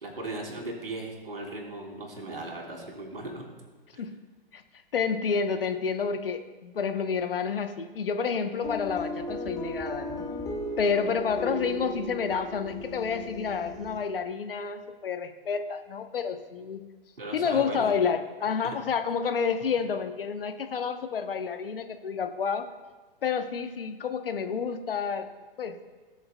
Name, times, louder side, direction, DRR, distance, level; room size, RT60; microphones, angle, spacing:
voice 1, 0.0-3.4 17.2-17.9 18.6-18.8, right 2 dB, 75° right, 0 dB, 3.0 m, -37 dB
voice 2, 4.9-10.2 10.8-16.8 17.3-22.7 23.2-25.3 25.6-25.8, left 6 dB, 70° left, 8 dB, 0.9 m, -29 dB
sound 1, 8.6-14.0, left 1 dB, 10° left, 0.9 m, -36 dB
18.0 x 6.8 x 2.2 m, 1.3 s
figure-of-eight pair, 110°, 29 cm